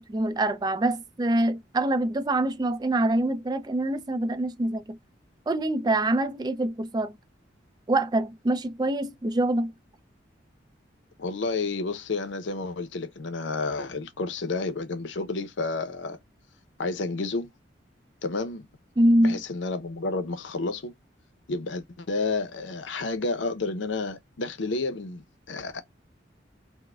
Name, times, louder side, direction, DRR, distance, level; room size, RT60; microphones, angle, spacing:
voice 1, 0.0-5.0 5.5-7.2 7.9-9.7 19.0-19.4, right 1 dB, 20° right, 0.3 m, -25 dB
voice 2, 11.2-16.2 16.8-17.5 18.2-18.7 19.2-20.9 21.5-25.8, left 3 dB, 85° left, 0.6 m, -30 dB
4.5 x 2.1 x 2.2 m
head